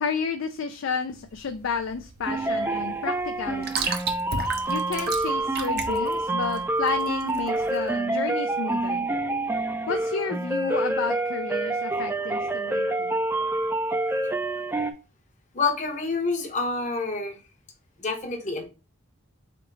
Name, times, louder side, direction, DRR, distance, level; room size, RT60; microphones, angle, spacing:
voice 1, 0.0-4.0 4.7-9.1 9.9-13.1, left 5 dB, 65° left, 7 dB, 0.4 m, -31 dB
sound 1, 1.1-7.8, right 5 dB, 50° right, 0.7 m, -34 dB
sound 2, 2.2-14.9, right 2 dB, 10° right, 0.3 m, -27 dB
voice 2, 15.5-17.4 18.0-18.7, left 4 dB, 35° left, 4 dB, 0.8 m, -27 dB
3.8 x 3.5 x 3.7 m, 0.32 s
head